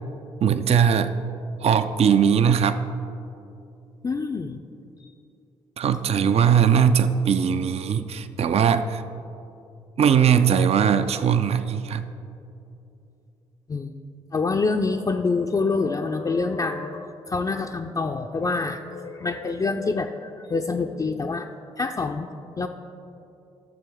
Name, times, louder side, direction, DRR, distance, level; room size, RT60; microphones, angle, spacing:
voice 1, 0.4-1.1 1.6-2.8 5.8-9.0 10.0-12.0, right 7 dB, 45° right, 10 dB, 0.5 m, -20 dB
voice 2, 4.0-4.6 5.0-5.1 13.7-13.9 14.3-21.5 21.8-22.3 22.6-22.7, left 4 dB, 25° left, 2 dB, 0.5 m, -26 dB
12.5 x 6.8 x 3.6 m, 2.7 s
hypercardioid pair, 45°, 14 cm